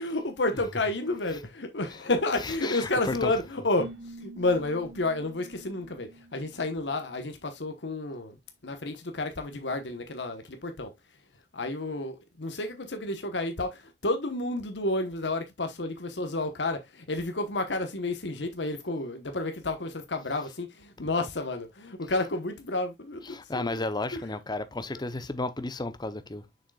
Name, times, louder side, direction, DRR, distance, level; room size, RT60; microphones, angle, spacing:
voice 1, 0.0-3.9 4.2-8.4 8.6-10.9 11.5-23.8 24.1-24.2 24.9-25.0, left 2 dB, 85° left, 1.2 m, -31 dB
voice 2, 2.4-3.3 23.2-26.5, left 2 dB, 25° left, 0.8 m, -33 dB
Keyboard (musical), 3.8-7.4, right 1 dB, 75° right, 2.4 m, -47 dB
6.9 x 6.4 x 2.3 m
head